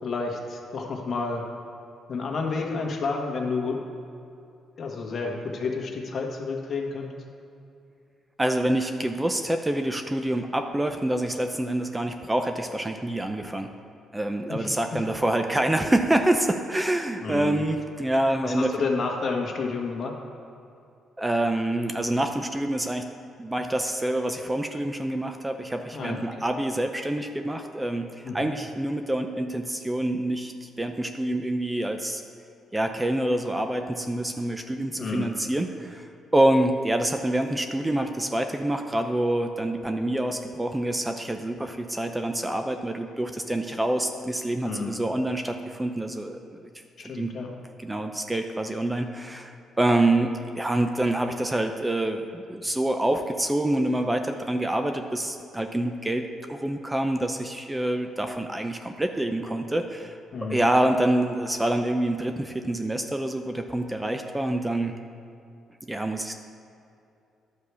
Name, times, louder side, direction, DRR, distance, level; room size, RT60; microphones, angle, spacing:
voice 1, 0.0-1.5 2.1-3.8 4.8-7.1 14.5-15.0 17.2-17.6 18.4-20.2 25.9-26.3 28.2-28.5 35.0-35.3 44.6-45.0 47.0-47.5 60.3-60.6, left 4 dB, 50° left, 1 dB, 1.6 m, -30 dB
voice 2, 8.4-13.7 14.1-18.8 21.2-23.1 23.4-32.2 32.7-46.7 47.1-47.3 47.8-49.5 49.8-60.2 60.5-64.9 65.9-66.3, right 1 dB, 15° right, 6 dB, 0.6 m, -26 dB
11.0 x 4.8 x 6.9 m, 2.6 s
cardioid pair, 90°, 0 cm